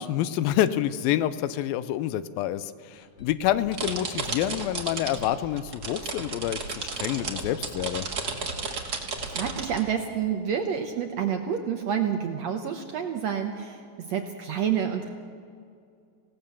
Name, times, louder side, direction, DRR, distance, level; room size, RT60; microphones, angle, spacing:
voice 1, 0.0-8.1, left 12 dB, 85° left, 15 dB, 2.5 m, -27 dB
sound 1, 2.9-10.7 10.9-11.0 11.4-11.5, left 2 dB, 55° left, 1.5 m, -45 dB
sound 2, 3.7-5.3 5.6-9.8, right 4 dB, 40° right, 1.5 m, -33 dB
voice 2, 8.7-15.1, right 8 dB, 70° right, 5 dB, 1.7 m, -29 dB
25.5 x 17.0 x 7.1 m, 2.4 s
omnidirectional pair, 4.1 m